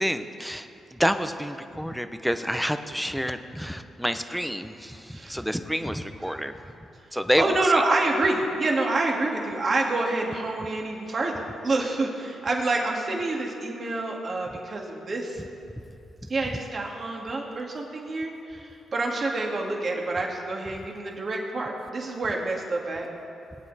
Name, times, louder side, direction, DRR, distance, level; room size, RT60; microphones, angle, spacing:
voice 1, 0.0-6.5 7.1-7.8 15.4-15.5 16.4-16.5, equal, ahead, 9 dB, 0.8 m, -28 dB
voice 2, 7.4-15.4 16.3-23.1, right 2 dB, 45° right, 0 dB, 2.3 m, -27 dB
21.0 x 8.9 x 4.2 m, 2.6 s
cardioid pair, 70°, 0 cm